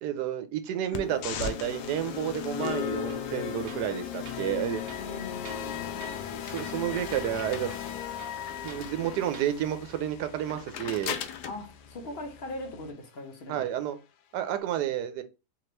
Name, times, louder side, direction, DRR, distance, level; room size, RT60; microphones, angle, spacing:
voice 1, 0.0-4.8 6.3-7.7 8.6-11.2 13.5-14.0 14.3-15.2, right 11 dB, 85° right, 1.2 m, -31 dB
sound 1, 0.9-12.9, left 9 dB, 85° left, 1.2 m, -36 dB
Tools, 3.1-3.3 3.7-3.9 4.2-4.4 4.9-5.7 6.0-6.3 6.6-6.8 7.1-7.3 7.7-8.9 9.2-9.5, right 7 dB, 65° right, 0.8 m, -49 dB
voice 2, 5.0-6.4 11.5-13.8, left 2 dB, 50° left, 0.9 m, -40 dB
3.7 x 2.9 x 3.2 m
omnidirectional pair, 1.7 m